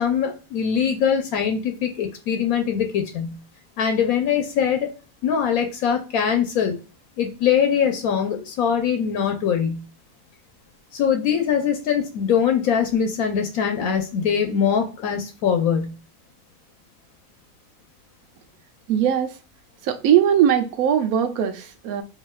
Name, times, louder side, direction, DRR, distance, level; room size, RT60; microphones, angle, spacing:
voice 1, 0.0-3.4 3.8-5.0 5.2-6.8 7.2-9.8 10.9-15.9, left 7 dB, 75° left, 1.1 m, -22 dB
voice 2, 18.9-19.4 19.8-22.0, right 9 dB, 85° right, 1.1 m, -20 dB
4.8 x 2.7 x 2.3 m
omnidirectional pair, 1.5 m